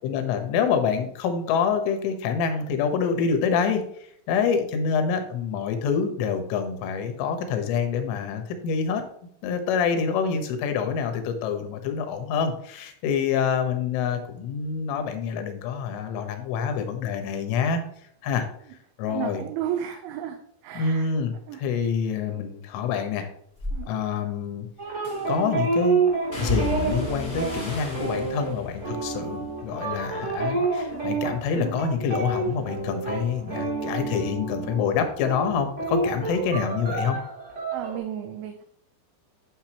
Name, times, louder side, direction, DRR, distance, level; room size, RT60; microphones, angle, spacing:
voice 1, 0.0-3.8 4.3-9.0 9.4-17.8 18.2-18.5 19.0-19.4 20.8-23.3 23.9-24.7 25.3-26.0 26.4-37.2, left 6 dB, 85° left, 6 dB, 3.7 m, -26 dB
voice 2, 19.1-20.4 20.6-21.1 21.5-21.6 23.7-23.9 37.7-38.6, right 11 dB, 80° right, 5 dB, 3.0 m, -33 dB
sound 1, 23.6-23.8 25.0-25.5 26.3-30.5 30.9-31.5 31.9-35.1 35.4-36.5 36.8-37.0, left 1 dB, 15° left, 1.8 m, -36 dB
sound 2, 24.8-35.0 35.2-38.0, right 4 dB, 20° right, 2.1 m, -29 dB
11.5 x 6.5 x 3.0 m, 0.68 s
omnidirectional pair, 5.6 m